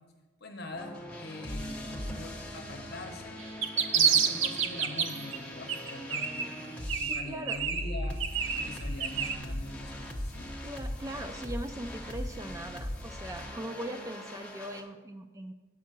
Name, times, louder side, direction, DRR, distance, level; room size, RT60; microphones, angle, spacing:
voice 1, 0.4-3.4 3.9-6.5 7.0-8.2 8.5-10.5, left 2 dB, 50° left, 3 dB, 0.9 m, -43 dB
sound 1, 0.7-7.2 7.5-14.8, left 1 dB, 5° left, 0.9 m, -40 dB
sound 2, 3.4-5.4 5.7-6.6 6.9-9.4, right 7 dB, 70° right, 0.6 m, -29 dB
voice 2, 7.1-7.7 10.6-15.5, right 1 dB, 15° right, 7 dB, 0.3 m, -40 dB
8.3 x 5.6 x 7.3 m, 1.3 s
head